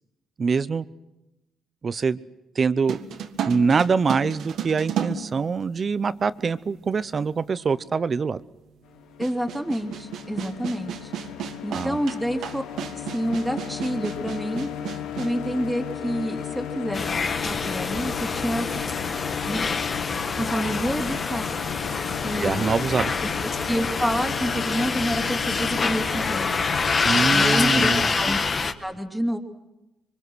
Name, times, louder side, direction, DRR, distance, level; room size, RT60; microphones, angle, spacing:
voice 1, 0.4-0.8 1.8-2.2 2.6-3.0 3.5-8.4 11.7-12.0 22.4-23.1 27.0-28.1, right 5 dB, 40° right, 0.8 m, -24 dB
sound 1, 2.9-6.1 7.0-7.1 9.2-15.4, right 8 dB, 75° right, 1.7 m, -33 dB
sound 2, 8.8-28.1, left 10 dB, 85° left, 1.2 m, -35 dB
voice 2, 9.2-11.1 11.6-12.6 13.0-14.7 15.2-17.2 17.4-18.6 19.4-19.6 20.3-21.5 22.2-22.7 23.4-26.5 27.3-28.4 28.8-29.4, equal, ahead, 2.7 m, -28 dB
sound 3, 16.9-28.7, left 4 dB, 35° left, 1.5 m, -26 dB
25.5 x 24.5 x 6.3 m
cardioid pair, 95°, 0 cm